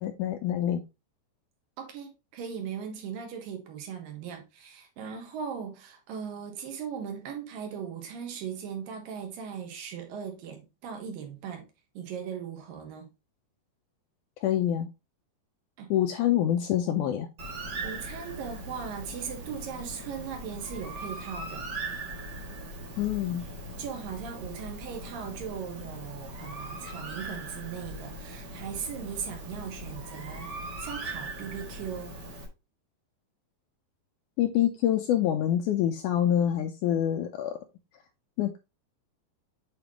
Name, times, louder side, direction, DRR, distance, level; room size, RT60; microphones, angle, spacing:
voice 1, 0.0-0.8 14.4-14.9 15.9-17.3 23.0-23.4 34.4-37.6 38.4-38.6, left 11 dB, 80° left, 1.8 m, -26 dB
voice 2, 1.8-11.7 11.9-13.1 15.8-15.9 17.8-21.7 23.8-30.5 30.8-32.1, right 7 dB, 75° right, 3.1 m, -38 dB
Bird, 17.4-32.5, right 1 dB, 55° right, 1.2 m, -40 dB
8.0 x 4.3 x 3.1 m
omnidirectional pair, 4.1 m